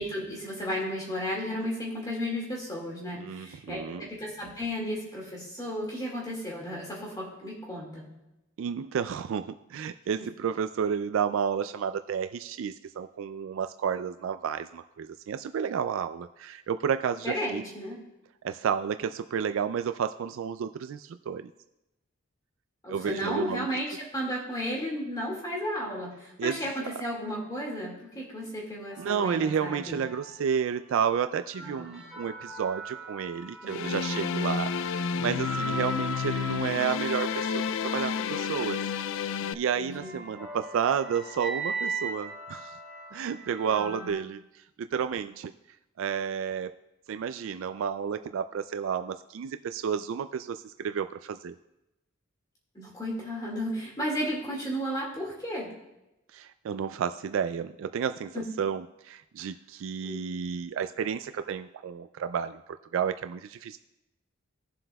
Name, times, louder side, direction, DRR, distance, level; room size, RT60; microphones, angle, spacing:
voice 1, 0.0-8.1 17.2-18.0 22.8-30.1 31.6-31.9 33.6-34.1 39.8-40.1 43.7-44.1 52.7-55.7 58.3-58.5 60.0-60.2, equal, 20° left, -3 dB, 2.0 m, -34 dB
voice 2, 3.1-4.1 8.6-17.6 18.4-21.5 22.9-23.7 26.4-26.6 26.8-26.9 29.0-38.8 39.1-42.7 43.1-45.5 46.0-46.7 47.1-51.6 56.3-63.8, right 7 dB, 70° right, 11 dB, 0.3 m, -31 dB
sound 1, 28.9-30.8 31.3-44.1, right 3 dB, 5° right, 3.2 m, -40 dB
sound 2, 33.7-39.5, left 6 dB, 65° left, 0.4 m, -30 dB
18.0 x 7.5 x 2.3 m, 0.94 s
head